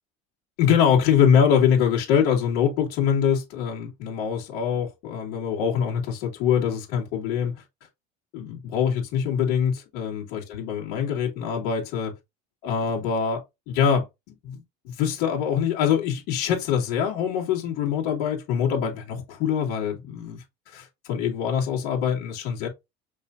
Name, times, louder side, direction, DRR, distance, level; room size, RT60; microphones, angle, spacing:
voice 1, 0.6-7.5 8.3-12.1 12.6-13.4 13.7-20.4 20.7-22.7, left 8 dB, 70° left, 2.3 m, -24 dB
5.4 x 3.3 x 2.7 m
cardioid pair, 145°, 19 cm